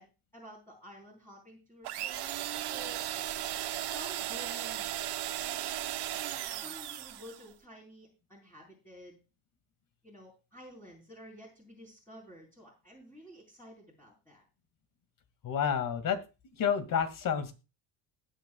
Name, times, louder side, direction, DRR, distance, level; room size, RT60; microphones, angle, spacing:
voice 1, 0.0-2.3 2.7-3.1 3.9-4.9 5.3-6.0 6.6-9.2 10.0-14.4, equal, 5° left, -5 dB, 4.3 m, -51 dB
sound 1, 1.8-7.5, right 12 dB, 65° right, 1.5 m, -36 dB
voice 2, 15.4-16.2 16.6-17.5, left 7 dB, 45° left, 10 dB, 2.2 m, -29 dB
20.0 x 7.2 x 2.3 m, 0.30 s
cardioid pair, 120°, 44 cm